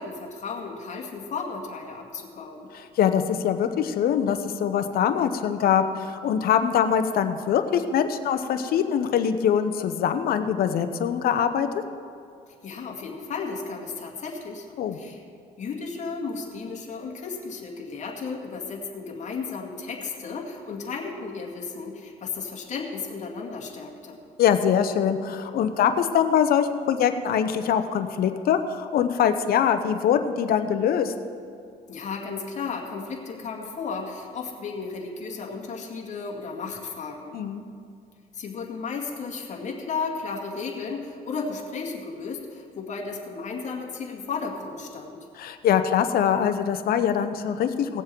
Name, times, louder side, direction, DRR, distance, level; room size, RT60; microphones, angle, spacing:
voice 1, 0.0-2.7 12.6-14.7 14.9-15.2 15.6-24.2 31.9-37.4 38.3-45.2, left 4 dB, 45° left, -1 dB, 2.2 m, -34 dB
voice 2, 2.7-11.8 14.8-15.0 24.4-31.1 37.3-37.6 45.4-48.0, left 8 dB, 60° left, 9 dB, 0.9 m, -23 dB
18.5 x 7.4 x 4.6 m, 2.4 s
cardioid pair, 110°, 17 cm